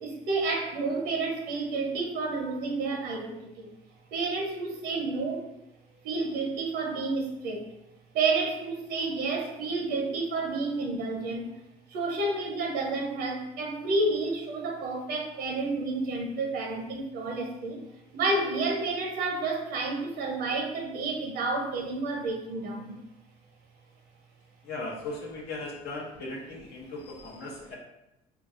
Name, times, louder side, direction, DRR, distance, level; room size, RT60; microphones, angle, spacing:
voice 1, 0.0-3.3 3.6-3.7 4.1-5.4 6.0-7.6 8.1-11.4 11.9-17.8 18.1-22.9, right 3 dB, 75° right, 1 dB, 0.7 m, -30 dB
voice 2, 24.6-27.8, left 2 dB, 70° left, -2 dB, 0.7 m, -38 dB
3.8 x 2.3 x 2.4 m, 0.88 s
cardioid pair, 110°, 17 cm